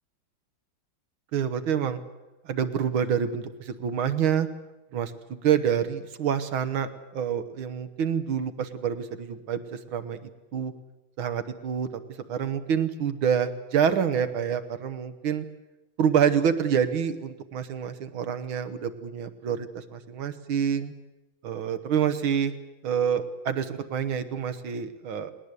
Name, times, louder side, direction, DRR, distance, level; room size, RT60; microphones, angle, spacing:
voice 1, 1.3-2.0 2.5-4.5 4.9-10.2 10.5-10.7 11.2-11.9 12.3-15.4 16.0-20.9 21.4-22.5 22.8-25.3, right 8 dB, 80° right, 10 dB, 2.1 m, -27 dB
20.0 x 19.5 x 8.3 m, 1.0 s
omnidirectional pair, 2.2 m